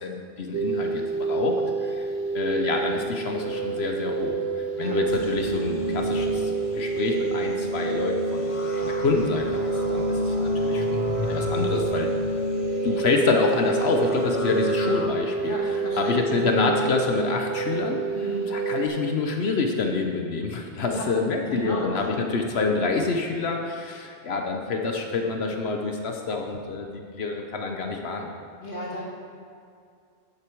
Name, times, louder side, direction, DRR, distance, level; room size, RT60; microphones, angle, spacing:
voice 1, 0.0-8.5 8.8-12.4 12.8-18.0 18.5-28.3, left 4 dB, 70° left, 3 dB, 1.1 m, -27 dB
sound 1, 0.5-18.9, right 4 dB, 75° right, 1.1 m, -28 dB
sound 2, 5.1-15.1, left 2 dB, 35° left, 0.8 m, -31 dB
voice 2, 15.4-16.3 18.2-18.5 20.8-21.1 21.5-21.9 28.6-29.0, equal, 50° left, -4 dB, 2.2 m, -34 dB
10.5 x 7.9 x 4.6 m, 2.4 s
omnidirectional pair, 1.1 m